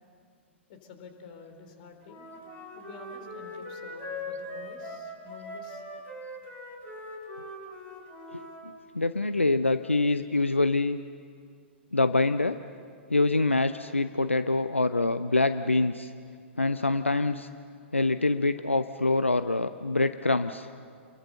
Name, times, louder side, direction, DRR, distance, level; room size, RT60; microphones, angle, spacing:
voice 1, 0.7-2.3 2.7-5.8, left 5 dB, 45° left, 6 dB, 3.7 m, -49 dB
Wind instrument woodwind instrument, 2.0-8.6, left 1 dB, 25° left, 4.3 m, -41 dB
voice 2, 8.6-11.0 11.9-12.6 13.1-16.1 16.6-17.5 17.9-20.7, left 2 dB, 85° left, 12 dB, 0.6 m, -25 dB
28.5 x 22.0 x 6.8 m, 2.2 s
figure-of-eight pair, 105°, 7 cm